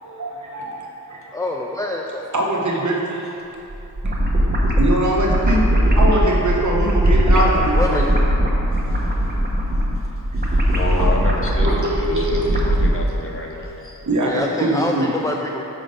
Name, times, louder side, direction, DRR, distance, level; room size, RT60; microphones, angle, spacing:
voice 1, 0.0-1.4 2.1-3.3 4.0-4.1 4.8-8.0 9.1-9.2 10.9-11.0 11.6-12.5 14.1-15.1, right 1 dB, 50° right, -3 dB, 1.1 m, -23 dB
voice 2, 1.3-2.2 7.7-8.0 14.2-15.6, left 2 dB, 10° left, 0 dB, 0.3 m, -25 dB
sound 1, 3.7-12.9, equal, 25° right, 0.9 m, -19 dB
voice 3, 10.4-14.0, left 2 dB, 35° left, -1 dB, 0.8 m, -29 dB
6.2 x 3.8 x 5.3 m, 2.9 s
wide cardioid pair, 70°, 38 cm